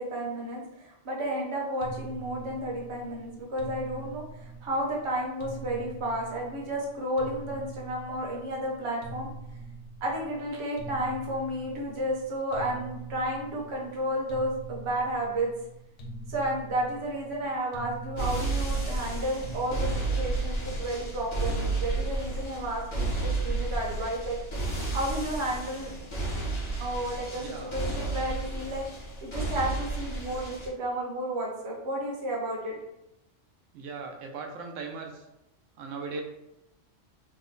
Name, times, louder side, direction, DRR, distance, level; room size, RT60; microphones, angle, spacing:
voice 1, 0.0-9.3 10.0-15.5 16.3-24.4 24.9-25.9 26.8-28.8 29.2-32.8, right 1 dB, 35° right, -2 dB, 0.6 m, -32 dB
sound 1, 1.8-21.1, right 2 dB, 70° left, 0.9 m, -44 dB
sound 2, 18.2-30.7, right 2 dB, 35° left, 0.5 m, -32 dB
voice 2, 27.3-27.8 33.7-35.3 35.8-36.2, right 4 dB, 85° right, 3 dB, 0.9 m, -38 dB
3.0 x 2.1 x 3.7 m, 0.91 s
omnidirectional pair, 1.3 m